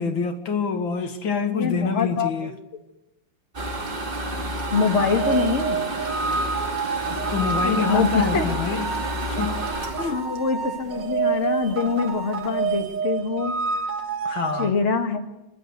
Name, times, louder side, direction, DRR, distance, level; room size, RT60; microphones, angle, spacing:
voice 1, 0.0-2.5 7.1-9.7 10.0-10.2 14.2-14.8, left 5 dB, 80° left, 2.4 m, -27 dB
voice 2, 1.5-2.5 4.7-5.8 7.6-8.6 10.1-13.6 14.6-15.2, left 4 dB, 35° left, 2.2 m, -24 dB
sound 1, 3.5-11.3 11.7-11.8 12.2-12.3 12.5-12.9, right 1 dB, 25° right, 2.4 m, -30 dB
sound 2, 4.7-14.7, right 5 dB, 65° right, 2.9 m, -28 dB
29.5 x 12.0 x 8.2 m
omnidirectional pair, 2.1 m